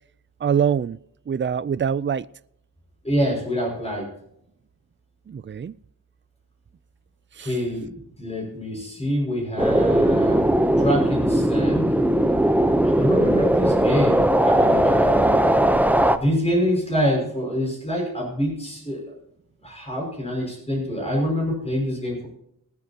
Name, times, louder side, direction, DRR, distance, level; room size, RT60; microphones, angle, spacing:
voice 1, 0.4-1.0 1.3-2.3 5.3-5.8 7.4-7.5, right 8 dB, 35° right, 0.4 m, -24 dB
voice 2, 3.0-4.1 7.4-10.5 10.8-11.9 12.8-15.4 16.1-19.0 19.6-22.3, equal, 20° left, 5.8 m, -26 dB
sound 1, 9.6-16.2, right 1 dB, 5° right, 0.7 m, -19 dB
19.5 x 13.5 x 2.9 m
wide cardioid pair, 95°, 34 cm